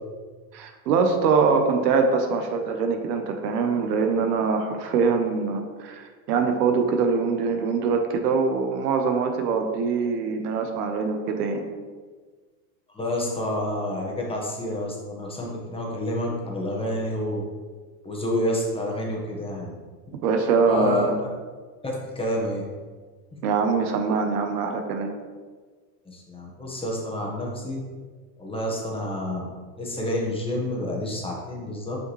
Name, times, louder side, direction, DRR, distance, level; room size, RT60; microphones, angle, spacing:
voice 1, 0.5-11.7 20.2-21.2 23.4-25.1, right 5 dB, 70° right, 5 dB, 0.9 m, -23 dB
voice 2, 12.9-17.4 18.0-19.7 20.6-21.1 21.8-22.6 26.0-27.8 28.4-29.4 29.8-32.0, left 1 dB, 10° left, -3 dB, 1.3 m, -29 dB
5.7 x 5.3 x 3.2 m, 1.4 s
hypercardioid pair, 105°, 49 cm